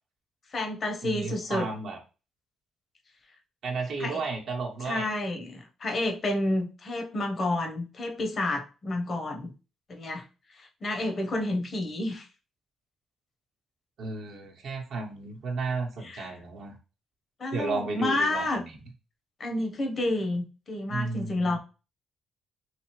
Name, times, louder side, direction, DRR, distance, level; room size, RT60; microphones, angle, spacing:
voice 1, 0.5-1.7 4.0-4.2 4.8-9.5 9.9-12.3 16.0-16.4 17.4-18.6 19.4-21.6, left 2 dB, 45° left, 4 dB, 0.8 m, -30 dB
voice 2, 1.0-2.0 3.6-5.1 14.0-16.8 17.5-18.6 20.9-21.6, right 3 dB, 70° right, 1 dB, 0.8 m, -33 dB
3.3 x 2.7 x 2.9 m, 0.32 s
cardioid pair, 90°, 0 cm